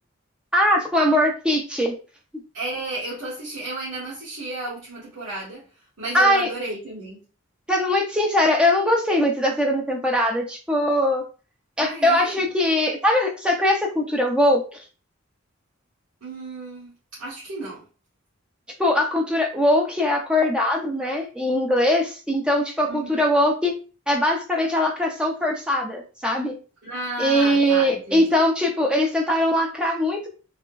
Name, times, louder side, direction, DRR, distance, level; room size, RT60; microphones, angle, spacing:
voice 1, 0.5-2.0 6.1-6.5 7.7-11.2 11.8-14.8 18.8-23.7 24.1-26.6 27.2-30.3, left 1 dB, 5° right, 1 dB, 0.4 m, -21 dB
voice 2, 2.5-5.6 6.0-7.2 11.8-12.4 16.2-16.9 17.2-17.8 22.8-23.2 26.8-28.4, right 2 dB, 85° right, -8 dB, 1.2 m, -33 dB
3.4 x 2.0 x 2.3 m, 0.36 s
head